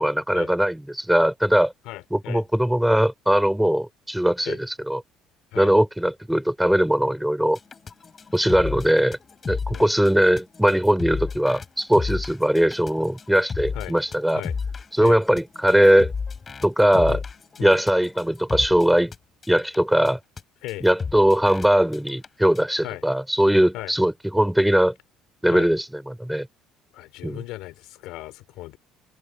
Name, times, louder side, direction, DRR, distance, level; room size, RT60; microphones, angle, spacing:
voice 1, 0.0-1.7 2.1-5.0 5.5-7.6 8.3-9.2 9.5-14.4 14.9-16.1 16.6-17.2 17.6-19.1 19.5-20.2 20.8-24.9 25.4-26.5 27.2-27.4, equal, ahead, 4.1 m, -20 dB
voice 2, 1.9-2.4 4.5-4.6 5.5-5.7 9.7-9.9 13.7-13.9 14.3-14.5 15.0-15.2 17.1-17.2 17.6-17.8 20.6-20.9 22.8-23.0 23.7-23.9 25.5-25.7 26.9-28.8, left 17 dB, 70° left, 5.3 m, -36 dB
sound 1, 7.5-19.2 19.4-19.8 20.1-20.2 20.4-20.5 20.7-20.8 21.0-21.7 21.9-22.3 22.6-22.7, left 5 dB, 25° left, 3.8 m, -33 dB
cardioid pair, 145°, 0 cm